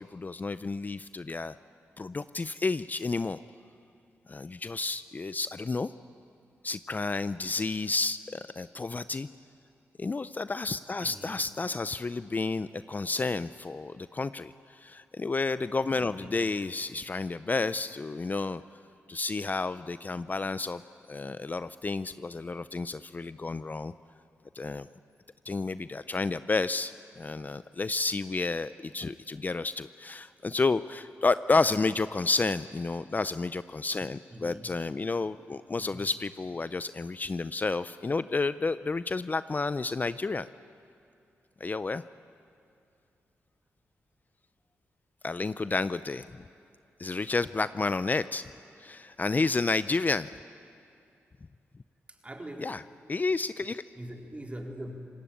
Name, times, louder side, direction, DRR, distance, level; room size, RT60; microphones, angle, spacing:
voice 1, 0.0-1.6 2.0-3.4 4.3-5.9 6.6-9.3 10.0-18.6 19.1-20.8 21.1-23.9 24.6-24.9 25.5-40.5 41.6-42.0 45.2-46.3 47.0-48.5 48.8-50.3 52.6-52.8 53.1-53.8, left 3 dB, 35° left, 14 dB, 0.5 m, -31 dB
voice 2, 11.0-11.4 16.2-16.5 34.3-34.9 35.7-36.1 52.1-52.8 54.0-54.9, right 1 dB, 25° right, 2 dB, 3.8 m, -43 dB
27.5 x 19.0 x 8.7 m, 2.5 s
cardioid pair, 55°, 5 cm